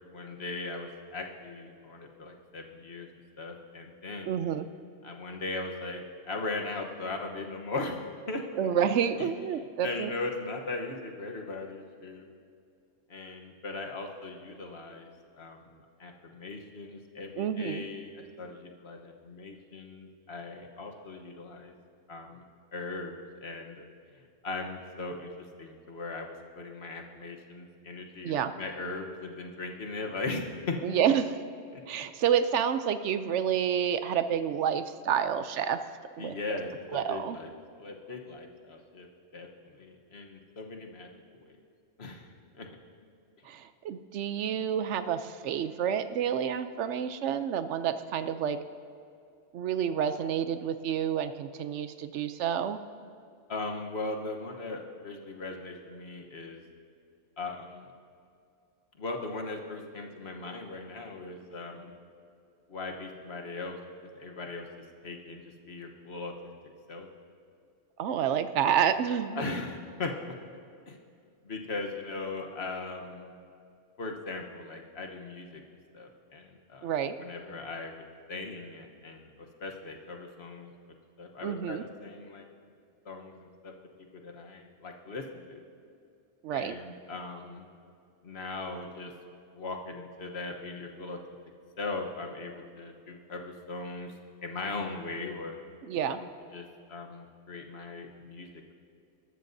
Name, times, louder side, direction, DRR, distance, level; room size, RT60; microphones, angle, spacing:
voice 1, 0.1-3.1 3.4-4.4 5.0-8.7 9.2-12.3 13.1-15.1 15.4-21.7 22.1-22.5 22.7-23.8 24.1-25.3 25.6-30.8 31.7-32.0 36.2-37.5 37.8-39.1 39.3-41.1 41.5-41.6 42.0-42.7 53.5-56.6 57.4-57.9 59.0-61.9 62.7-63.8 64.1-64.7 65.0-66.5 66.9-67.1 68.7-68.8 69.3-70.4 70.9-71.0 71.4-73.3 74.0-76.9 77.2-82.5 83.0-83.7 84.0-85.6 86.5-87.7 88.2-89.1 89.5-91.2 91.8-94.1 94.4-95.6 96.1-98.7, left 3 dB, 60° left, 2 dB, 1.3 m, -39 dB
voice 2, 4.3-4.7 8.6-10.1 17.4-17.8 28.2-28.5 30.8-31.4 31.9-35.8 36.2-36.3 36.9-37.4 43.4-48.6 49.5-52.8 68.0-69.5 76.8-77.2 81.4-81.8 86.4-86.7 95.8-96.2, right 8 dB, 75° right, 11 dB, 0.9 m, -29 dB
20.5 x 13.0 x 2.7 m, 2.5 s
omnidirectional pair, 1.2 m